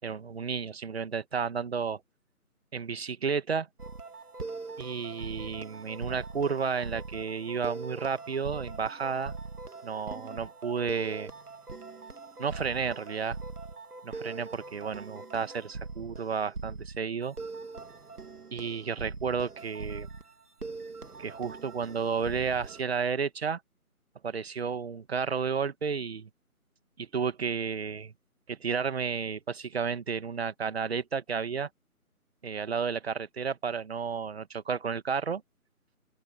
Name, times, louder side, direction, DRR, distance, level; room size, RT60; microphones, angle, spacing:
voice 1, 0.0-2.0 2.7-3.7 4.8-9.4 9.8-11.3 12.4-13.4 14.0-17.4 18.5-20.1 21.2-23.6 24.2-26.3 27.0-28.1 28.5-31.7 32.4-35.4, right 6 dB, 45° right, 2.0 m, -32 dB
sound 1, 3.8-22.8, right 3 dB, 80° right, 2.5 m, -42 dB
open air
figure-of-eight pair, 160°, 45 cm